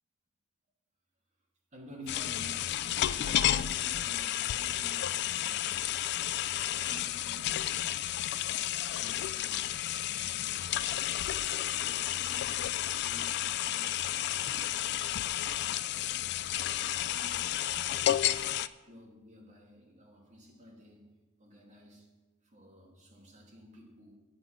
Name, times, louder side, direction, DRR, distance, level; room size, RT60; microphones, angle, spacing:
voice 1, 1.7-2.7 3.1-5.8 6.4-7.9 8.7-9.7 10.1-12.6 12.9-14.9 15.6-16.3 16.6-17.6 18.8-21.1 21.4-22.1 22.5-24.2, equal, 35° right, -1 dB, 2.4 m, -52 dB
sound 1, 2.1-18.7, left 12 dB, 50° left, 0.3 m, -32 dB
9.5 x 8.0 x 6.1 m, 1.2 s
head